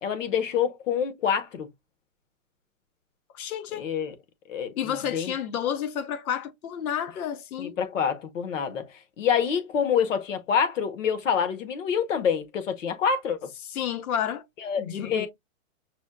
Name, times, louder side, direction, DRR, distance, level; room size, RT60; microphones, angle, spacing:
voice 1, 0.0-1.7 3.8-4.1 4.5-5.3 7.6-8.8 9.2-13.5 14.6-15.3, left 7 dB, 60° left, 1.0 m, -26 dB
voice 2, 3.3-3.9 4.8-7.8 13.7-14.4 14.8-15.3, left 9 dB, 85° left, 0.8 m, -30 dB
6.1 x 2.2 x 2.3 m
hypercardioid pair, 170°, 42 cm